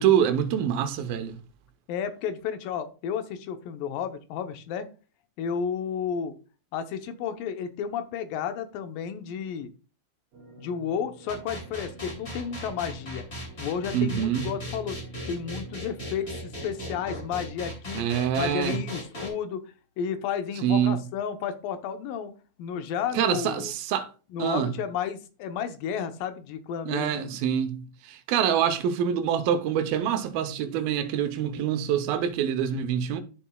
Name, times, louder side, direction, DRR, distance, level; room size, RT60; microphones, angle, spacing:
voice 1, 0.0-1.4 13.9-14.5 18.0-18.8 20.6-21.0 23.1-24.1 24.4-24.7 26.9-33.2, right 9 dB, 90° right, 2.7 m, -25 dB
voice 2, 1.9-4.9 5.4-6.3 6.7-9.7 10.6-13.2 13.6-15.0 15.3-18.0 18.4-19.6 20.0-22.3 22.6-23.7 24.3-27.2, left 7 dB, 80° left, 2.6 m, -32 dB
sound 1, 10.3-17.2, right 3 dB, 65° right, 3.8 m, -47 dB
sound 2, 11.3-19.3, equal, 20° left, 2.3 m, -37 dB
12.5 x 7.2 x 2.3 m
omnidirectional pair, 4.0 m